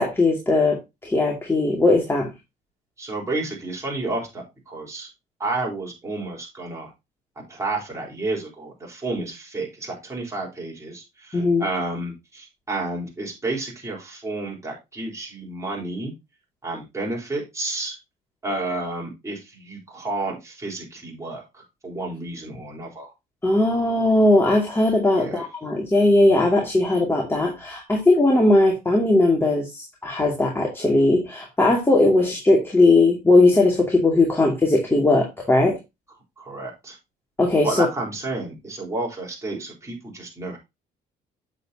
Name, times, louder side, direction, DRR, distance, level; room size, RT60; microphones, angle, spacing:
voice 1, 0.0-2.3 11.3-11.6 23.4-35.8 37.4-37.9, left 2 dB, 15° left, 0 dB, 2.4 m, -19 dB
voice 2, 3.0-5.1 5.4-6.9 7.5-16.1 16.6-18.0 18.4-23.1 25.1-25.4 36.4-37.0 37.6-40.6, right 2 dB, 15° right, -2 dB, 4.2 m, -31 dB
8.1 x 7.6 x 2.8 m, 0.23 s
cardioid pair, 110°, 17 cm